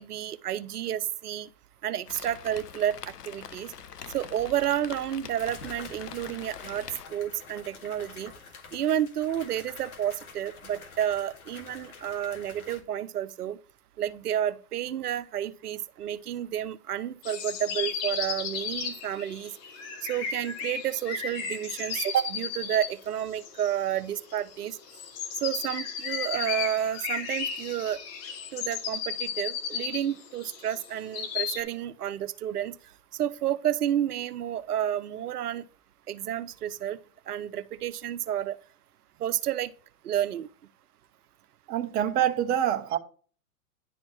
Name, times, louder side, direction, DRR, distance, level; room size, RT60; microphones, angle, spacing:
voice 1, 0.0-1.5 1.8-3.7 4.1-6.9 7.1-8.3 8.7-13.6 14.0-19.5 20.0-24.8 25.4-28.0 28.5-32.8 33.2-35.6 36.1-37.0 37.3-38.6 39.2-39.7 40.0-40.5, right 10 dB, 80° right, 0.7 m, -30 dB
Rain, 2.1-7.1, left 8 dB, 90° left, 0.7 m, -44 dB
sound 1, 4.4-4.5 5.4-12.8, left 5 dB, 65° left, 2.0 m, -47 dB
sound 2, 17.2-31.6, left 7 dB, 35° left, 1.1 m, -34 dB
voice 2, 41.7-43.0, right 10 dB, 20° right, 0.5 m, -26 dB
10.5 x 4.2 x 3.0 m
hypercardioid pair, 110°, 46 cm